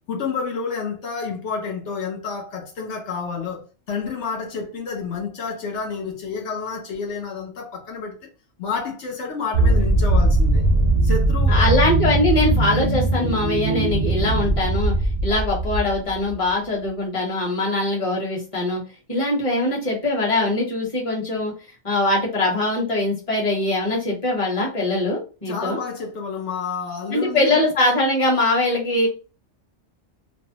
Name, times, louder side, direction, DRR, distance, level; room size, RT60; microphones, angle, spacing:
voice 1, 0.1-8.3 8.6-10.7 11.0-11.7 25.5-27.6, left 5 dB, 75° left, 0.9 m, -29 dB
sound 1, 9.5-16.3, right 2 dB, 50° right, 0.5 m, -20 dB
voice 2, 11.5-14.9 15.2-18.8 19.1-21.5 21.8-25.8 27.1-29.1, left 2 dB, 30° left, 1.0 m, -22 dB
2.6 x 2.0 x 2.7 m
omnidirectional pair, 1.2 m